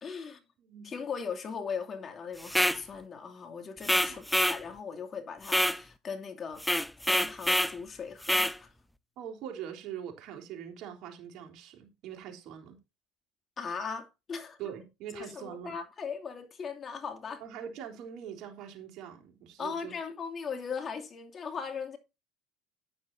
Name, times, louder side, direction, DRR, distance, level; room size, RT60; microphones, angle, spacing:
voice 1, 0.0-0.4 0.8-8.7 13.6-14.6 15.1-17.4 19.6-22.0, left 6 dB, 35° left, 2.6 m, -39 dB
voice 2, 0.6-0.9 4.1-4.2 9.2-12.8 14.6-15.8 17.4-19.9, right 9 dB, 65° right, 3.6 m, -43 dB
sound 1, 2.4-2.8 3.8-4.6 5.5-5.8 6.6-7.7 8.2-8.6, equal, ahead, 0.6 m, -26 dB
12.0 x 9.8 x 2.7 m
supercardioid pair, 90°, 0 cm